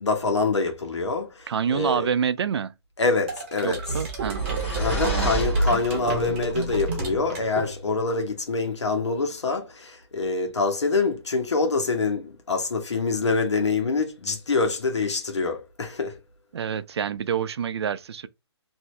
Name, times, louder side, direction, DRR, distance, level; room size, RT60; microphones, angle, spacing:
voice 1, 0.0-2.1 3.0-3.8 4.7-16.1, left 4 dB, 90° left, 1.1 m, -25 dB
voice 2, 1.5-2.7 3.6-4.6 5.0-5.3 16.5-18.3, right 7 dB, 70° right, 0.4 m, -27 dB
sound 1, 3.3-8.1, right 2 dB, 25° right, 0.8 m, -30 dB
sound 2, 4.0-6.3, right 3 dB, 10° left, 1.6 m, -30 dB
2.7 x 2.7 x 3.1 m
hypercardioid pair, 160°, 14 cm